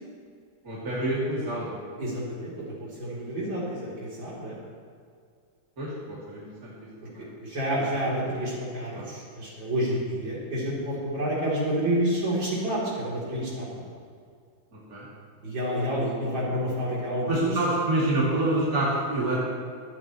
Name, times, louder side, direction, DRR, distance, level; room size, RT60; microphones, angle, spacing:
voice 1, 0.6-1.9 5.8-6.7 7.0-7.2 8.9-9.1 9.9-10.0 14.7-15.1 17.3-19.4, right 1 dB, 50° right, -7 dB, 3.3 m, -27 dB
voice 2, 2.0-2.5 2.8-4.6 7.4-13.9 15.4-17.5, equal, 80° right, -7 dB, 4.4 m, -29 dB
25.0 x 8.8 x 3.2 m, 2.2 s
omnidirectional pair, 2.0 m